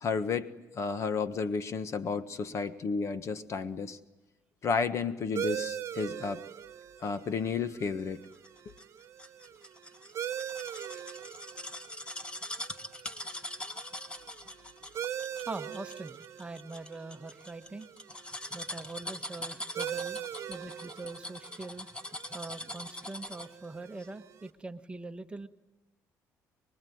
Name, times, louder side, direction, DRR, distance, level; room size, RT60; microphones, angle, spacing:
voice 1, 0.0-4.0 4.6-6.4 7.0-8.3, left 5 dB, 45° left, 12 dB, 1.5 m, -32 dB
sound 1, 5.3-24.5, right 9 dB, 45° right, 1.4 m, -42 dB
sound 2, 8.4-23.6 24.0-24.1, left 1 dB, 15° left, 1.8 m, -42 dB
voice 2, 15.5-17.9 18.5-21.9 22.3-25.5, right 3 dB, 15° right, 8 dB, 1.3 m, -43 dB
24.5 x 23.5 x 9.5 m, 1.1 s
cardioid pair, 115°, 7 cm